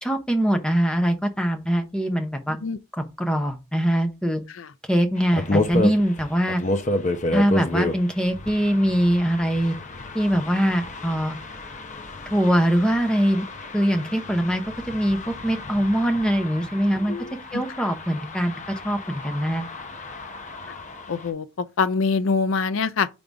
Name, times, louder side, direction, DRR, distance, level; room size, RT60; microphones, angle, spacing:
voice 1, 0.0-2.6 3.0-4.4 4.9-6.6 7.3-9.8 10.1-11.4 12.3-13.5 13.7-17.2 17.5-19.6, equal, 5° left, 0.8 m, -22 dB
sound 1, 5.2-21.3, left 2 dB, 35° left, 0.7 m, -31 dB
voice 2, 17.1-17.6 20.7-20.8 21.1-23.1, left 4 dB, 75° left, 0.5 m, -25 dB
5.2 x 3.8 x 4.6 m
head